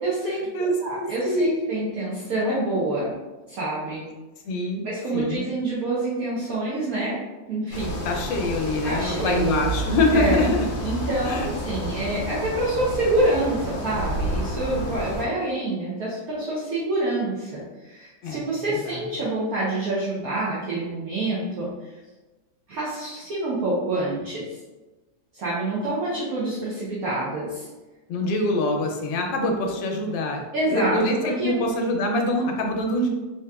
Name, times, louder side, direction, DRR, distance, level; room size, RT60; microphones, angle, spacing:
voice 1, 0.0-0.4 0.8-3.1 3.5-4.0 4.8-7.2 7.5-8.0 8.8-9.6 10.1-10.4 10.8-21.9 22.7-24.4 25.3-27.7 30.5-31.5, right 2 dB, 65° right, -8 dB, 1.0 m, -27 dB
voice 2, 0.5-1.6 4.4-4.8 5.1-5.4 8.0-10.7 11.2-11.5 18.2-18.4 18.6-19.1 28.1-30.4 30.7-33.1, left 1 dB, 85° left, 2 dB, 1.3 m, -24 dB
sound 1, 7.7-15.3, right 1 dB, 60° left, 0.9 m, -29 dB
3.5 x 2.8 x 2.2 m, 1.2 s
omnidirectional pair, 2.0 m